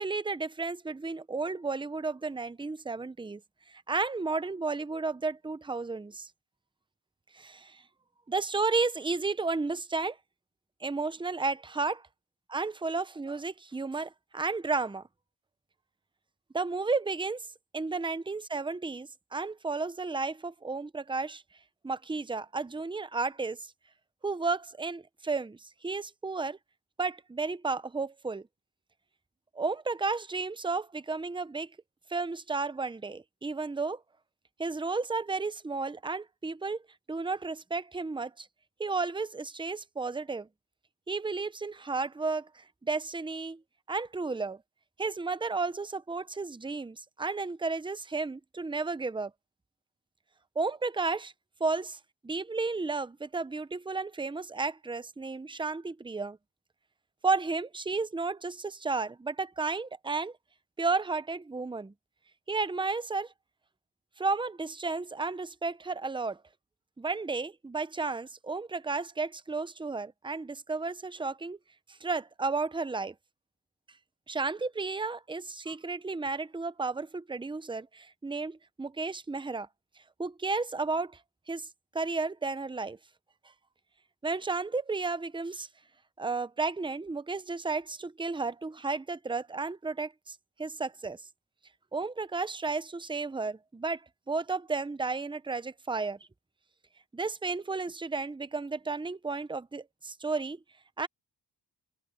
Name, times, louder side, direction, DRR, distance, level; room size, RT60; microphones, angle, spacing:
voice 1, 0.0-3.4 3.7-6.3 7.3-7.8 8.3-10.2 10.8-12.0 12.5-15.0 16.5-17.4 17.7-21.4 21.8-23.6 24.2-26.6 27.0-28.4 29.5-31.7 32.1-34.0 34.6-36.8 37.1-38.5 38.8-40.5 41.1-43.6 43.9-44.6 45.0-49.3 50.6-51.3 51.6-51.8 52.3-56.4 57.2-60.3 60.8-61.9 62.5-63.3 64.2-66.4 67.0-71.6 71.9-73.1 74.3-79.7 80.2-81.2 81.5-81.7 81.9-83.0 84.2-85.7 86.2-91.2 91.9-94.0 94.3-96.2 97.1-100.6 101.0-101.1, right 3 dB, 10° right, 0.6 m, -33 dB
wide cardioid pair, 120°, 46 cm